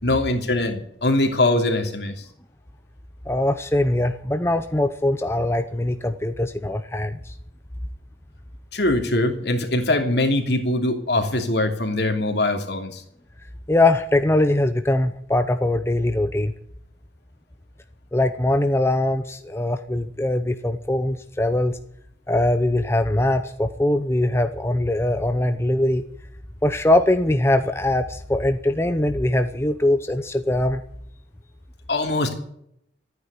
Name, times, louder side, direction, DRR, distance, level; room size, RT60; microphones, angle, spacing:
voice 1, 0.0-2.2 8.7-13.0 31.9-32.4, left 2 dB, 65° left, 4 dB, 2.8 m, -22 dB
voice 2, 3.3-7.3 13.7-16.5 18.1-21.8 22.3-26.0 26.6-30.8, left 1 dB, 15° left, 8 dB, 0.7 m, -21 dB
14.5 x 9.6 x 9.9 m, 0.71 s
head